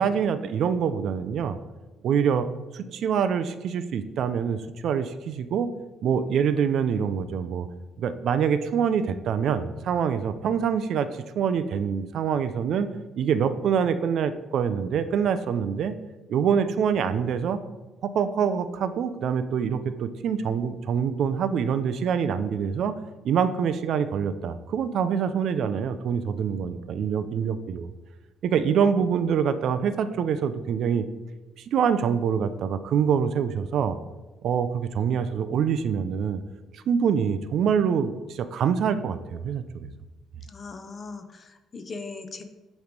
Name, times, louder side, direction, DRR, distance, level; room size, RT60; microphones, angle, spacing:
voice 1, 0.0-1.6 2.0-2.5 2.7-5.7 6.0-7.7 8.0-12.9 13.2-15.9 16.3-17.6 18.0-23.0 23.2-27.9 28.4-31.0 31.7-34.0 34.4-36.4 36.7-39.9, right 7 dB, 50° right, 12 dB, 0.3 m, -25 dB
voice 2, 40.5-42.4, left 4 dB, 25° left, 8 dB, 0.5 m, -39 dB
8.2 x 3.1 x 5.1 m, 1.1 s
cardioid pair, 180°, 0 cm